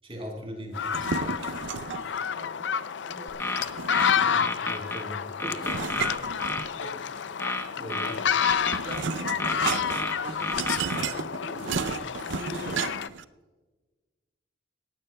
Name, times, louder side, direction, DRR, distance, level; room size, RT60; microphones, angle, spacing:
voice 1, 0.0-1.3 4.1-5.6 7.8-8.3 11.5-11.9, equal, 30° right, 2 dB, 4.2 m, -40 dB
sound 1, 0.7-13.1, left 8 dB, 75° left, 0.5 m, -30 dB
sound 2, 0.8-2.2 3.6-4.6 5.6-7.0 8.2-13.2, right 5 dB, 80° right, 0.5 m, -33 dB
voice 2, 1.9-3.4 4.2-4.5 5.6-6.3 6.7-7.3 8.8-11.2 11.5-11.6 12.2-12.9, right 1 dB, 60° right, 1 dB, 4.0 m, -44 dB
sound 3, 3.3-5.0 5.4-6.7 7.4-9.0 9.4-11.0, left 2 dB, 15° left, 0.9 m, -31 dB
19.0 x 15.5 x 2.2 m, 1.2 s
head